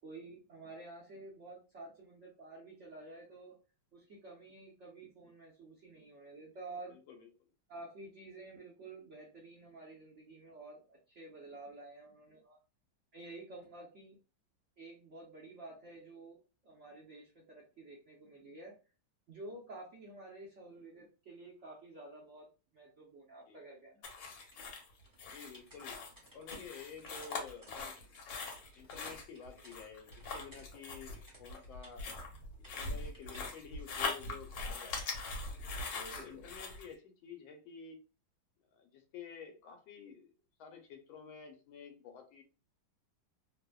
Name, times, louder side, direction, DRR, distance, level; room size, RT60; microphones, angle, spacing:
voice 1, 0.0-3.5 3.9-7.0 7.7-12.6 13.1-14.2 14.8-16.4 16.6-18.7 19.3-22.5 22.7-24.1 36.0-36.4, right 2 dB, 60° right, -5 dB, 0.7 m, -51 dB
voice 2, 6.9-7.3 23.5-23.6 25.3-28.0 28.7-32.2 32.8-35.2 35.9-38.0 38.7-40.3 40.6-42.4, left 6 dB, 85° left, 5 dB, 1.4 m, -51 dB
sound 1, 24.0-36.9, left 3 dB, 70° left, 1.3 m, -42 dB
sound 2, 24.5-29.8 30.1-32.2 32.6-33.5, right 1 dB, 25° right, 0.4 m, -60 dB
3.3 x 2.0 x 2.2 m, 0.34 s
omnidirectional pair, 2.1 m